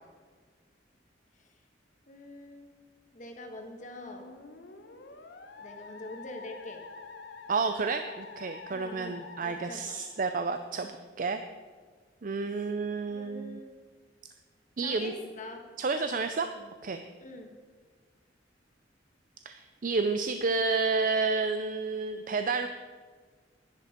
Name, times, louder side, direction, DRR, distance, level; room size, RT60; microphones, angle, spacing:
voice 1, 2.1-2.7 3.1-4.3 5.6-6.8 8.7-10.0 10.8-10.9 12.4-12.8 13.1-13.7 14.8-15.6 16.6-16.7 17.2-17.5, left 1 dB, 40° left, 3 dB, 1.6 m, -45 dB
Musical instrument, 3.8-10.7, left 4 dB, 60° left, 1.0 m, -47 dB
voice 2, 7.5-10.9 11.2-11.4 12.2-13.6 14.8-15.1 15.8-16.5 16.8-17.0 19.5-22.7, right 4 dB, 45° right, 8 dB, 0.5 m, -30 dB
11.0 x 10.5 x 5.2 m, 1.5 s
head